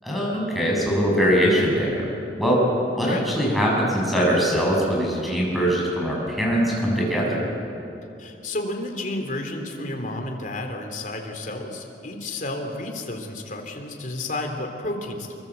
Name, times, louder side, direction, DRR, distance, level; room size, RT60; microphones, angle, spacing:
voice 1, 0.0-2.1 2.4-2.6 3.0-7.4, equal, ahead, -3 dB, 7.0 m, -22 dB
voice 2, 8.2-15.4, left 2 dB, 45° left, 3 dB, 3.4 m, -31 dB
26.0 x 23.0 x 8.3 m, 2.7 s
head